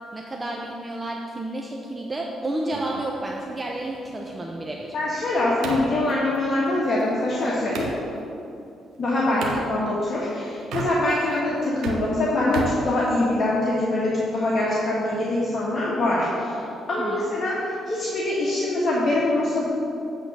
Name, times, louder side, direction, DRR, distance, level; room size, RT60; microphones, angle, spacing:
voice 1, 0.1-4.9 17.0-17.3, right 1 dB, 25° right, -1 dB, 0.7 m, -31 dB
sound 1, 2.7-8.0 9.4-9.7 10.6-11.3 11.6-13.6, right 4 dB, 80° right, 1.0 m, -35 dB
voice 2, 4.9-7.9 9.0-16.6 16.9-17.6 17.9-19.6, left 2 dB, 45° left, -7 dB, 1.5 m, -24 dB
8.8 x 3.7 x 6.7 m, 2.7 s
cardioid pair, 90°, 0 cm